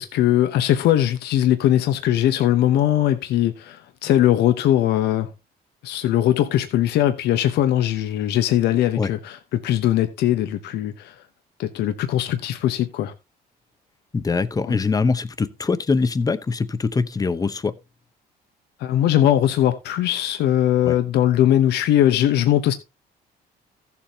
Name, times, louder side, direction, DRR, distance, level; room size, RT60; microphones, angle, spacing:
voice 1, 0.0-5.3 5.8-11.1 11.6-13.1 14.6-14.8 18.8-22.7, left 12 dB, 75° left, 1.0 m, -20 dB
voice 2, 14.1-17.7 20.8-21.0, left 4 dB, 20° left, 0.8 m, -23 dB
15.0 x 7.2 x 2.8 m
cardioid pair, 110°, 17 cm